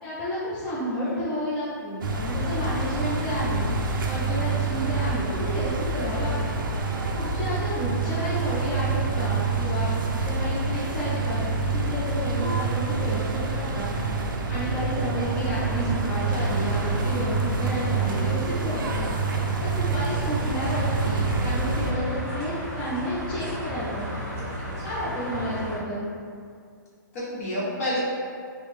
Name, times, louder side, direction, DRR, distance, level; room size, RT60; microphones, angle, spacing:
voice 1, 0.0-3.7 4.1-6.3 7.1-14.0 14.5-19.1 19.6-24.1 24.8-26.1, equal, 10° left, -12 dB, 0.3 m, -31 dB
sound 1, 2.0-21.9, right 3 dB, 90° right, 0.4 m, -27 dB
sound 2, 15.5-25.8, equal, 20° right, 0.7 m, -35 dB
voice 2, 24.3-24.9 27.1-28.0, left 1 dB, 45° left, -8 dB, 1.0 m, -30 dB
3.3 x 2.0 x 3.1 m, 2.2 s
hypercardioid pair, 165°, 11 cm